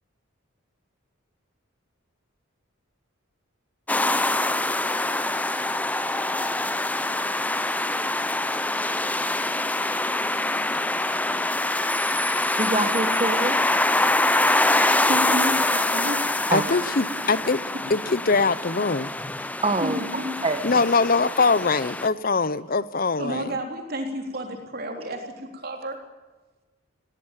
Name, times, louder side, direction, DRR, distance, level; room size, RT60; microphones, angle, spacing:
sound 1, 3.9-22.1, left 2 dB, 5° left, 0.7 m, -25 dB
voice 1, 12.6-13.6 15.3-15.4 16.5-16.7 19.6-20.0 20.4-20.8 21.4-21.5, right 2 dB, 25° right, 6 dB, 1.3 m, -26 dB
voice 2, 15.1-16.3 17.1-17.2 17.7-17.8 19.8-20.4 23.2-26.0, equal, 45° right, 4 dB, 3.7 m, -31 dB
voice 3, 16.5-17.6 17.9-19.1 20.6-23.5, left 4 dB, 45° left, 17 dB, 0.8 m, -22 dB
18.5 x 17.5 x 9.1 m, 1.2 s
head